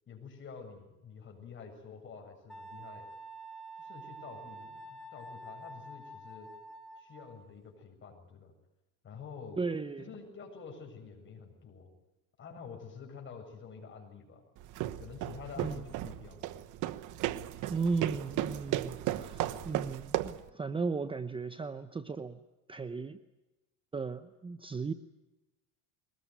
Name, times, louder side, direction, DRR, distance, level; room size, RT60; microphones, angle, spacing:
voice 1, 0.1-3.1 3.7-6.5 7.0-8.5 9.0-9.6 10.0-11.9 12.4-14.4 15.0-16.6 19.1-19.7, left 5 dB, 35° left, 3 dB, 7.6 m, -48 dB
Wind instrument woodwind instrument, 2.5-7.5, right 2 dB, ahead, 2.8 m, -48 dB
voice 2, 9.6-10.1 15.6-15.8 17.7-22.4 22.7-23.2 23.9-24.9, right 4 dB, 15° right, 11 dB, 0.8 m, -36 dB
sound 1, 14.6-20.5, right 14 dB, 65° right, 1.1 m, -35 dB
23.0 x 20.5 x 9.5 m, 1.0 s
cardioid pair, 125°, 32 cm